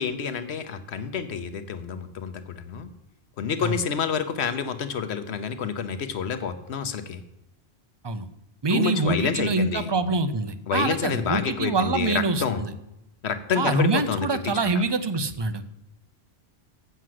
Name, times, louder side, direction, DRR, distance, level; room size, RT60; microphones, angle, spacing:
voice 1, 0.0-2.9 3.4-7.2 8.7-9.9 10.7-12.6 13.2-14.3, left 6 dB, 85° left, 10 dB, 1.1 m, -28 dB
voice 2, 8.6-12.7 13.5-15.6, right 3 dB, 30° right, 10 dB, 0.5 m, -25 dB
8.0 x 6.2 x 7.6 m, 0.86 s
omnidirectional pair, 1.1 m